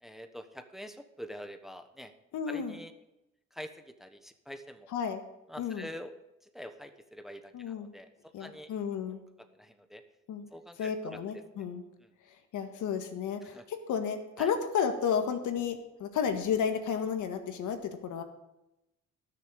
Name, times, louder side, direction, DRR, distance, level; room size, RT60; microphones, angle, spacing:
voice 1, 0.0-2.1 2.5-2.9 3.5-4.9 5.5-6.1 6.4-8.1 8.4-8.7 9.4-10.0 10.5-11.5 12.0-12.1 13.4-13.7 14.4-14.5, equal, ahead, 8 dB, 1.1 m, -45 dB
voice 2, 2.3-2.7 4.9-5.2 5.6-5.9 7.5-7.9 8.3-9.2 10.3-10.4 10.8-11.8 12.5-13.6 13.9-18.2, left 7 dB, 80° left, 7 dB, 1.7 m, -32 dB
19.5 x 6.8 x 5.2 m, 0.89 s
cardioid pair, 90°, 30 cm